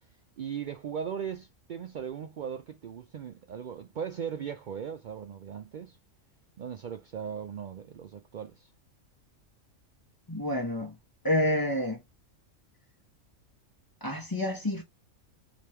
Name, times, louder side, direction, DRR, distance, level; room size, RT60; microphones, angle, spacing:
voice 1, 0.4-6.0 6.6-8.7, right 7 dB, 75° right, 0.4 m, -38 dB
voice 2, 10.3-10.9 11.2-12.0 14.0-14.8, left 1 dB, 20° left, 0.9 m, -28 dB
3.4 x 3.0 x 4.3 m
omnidirectional pair, 1.4 m